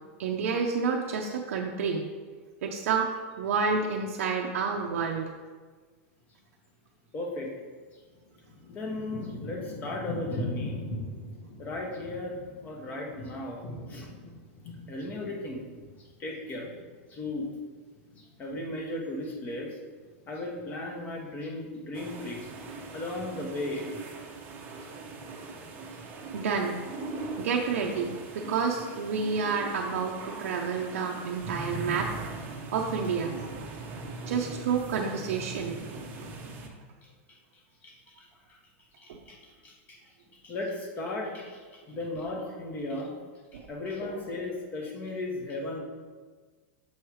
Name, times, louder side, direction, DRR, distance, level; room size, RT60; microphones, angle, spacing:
voice 1, 0.2-2.0 2.6-5.2 26.3-26.8 27.4-32.1 32.7-33.6 34.3-35.7 39.1-39.2 43.5-43.7, right 5 dB, 85° right, 0 dB, 0.5 m, -29 dB
voice 2, 7.1-7.5 7.9-8.0 8.7-10.9 11.6-13.6 13.9-14.1 14.9-15.6 16.0-16.7 17.1-17.5 18.2-19.8 20.3-22.5 22.9-23.9 24.8-24.9 25.9-26.0 37.0-38.6 39.0-40.0 40.3-43.1 43.7-45.8, left 2 dB, 20° left, 0 dB, 0.8 m, -36 dB
Thunder / Rain, 7.4-7.5 8.1-17.7 17.9-18.8 19.4-19.7 20.0-20.8 21.4-21.5, left 1 dB, 70° left, 1.3 m, -40 dB
sound 1, 21.9-36.7, right 3 dB, 25° right, 0.6 m, -40 dB
6.9 x 3.1 x 4.6 m, 1.5 s
supercardioid pair, 165°, 7 cm